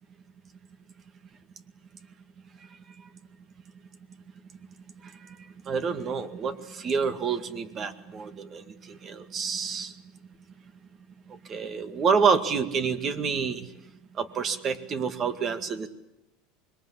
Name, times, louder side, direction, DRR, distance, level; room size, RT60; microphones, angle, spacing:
voice 1, 5.7-9.9 11.3-13.7 14.2-15.9, right 6 dB, 35° right, 9 dB, 2.1 m, -28 dB
25.5 x 22.5 x 8.5 m, 0.94 s
supercardioid pair, 120°, 0 cm